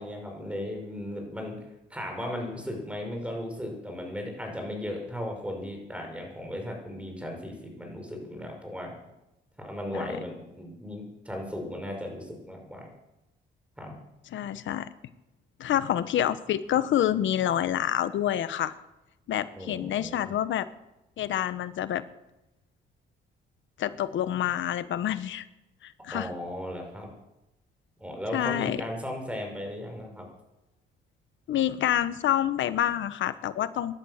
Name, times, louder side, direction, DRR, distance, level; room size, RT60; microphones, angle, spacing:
voice 1, 0.0-1.6 1.9-8.9 9.6-12.9 13.8-14.0 19.5-20.3 26.1-27.1 28.0-30.3, left 1 dB, 5° right, 2 dB, 5.5 m, -36 dB
voice 2, 14.3-14.9 15.6-18.7 19.3-20.7 21.2-22.0 23.8-25.4 25.8-26.3 28.3-28.8 31.5-33.9, left 11 dB, 70° left, 13 dB, 1.1 m, -27 dB
17.5 x 11.5 x 6.6 m, 0.94 s
cardioid pair, 90°, 20 cm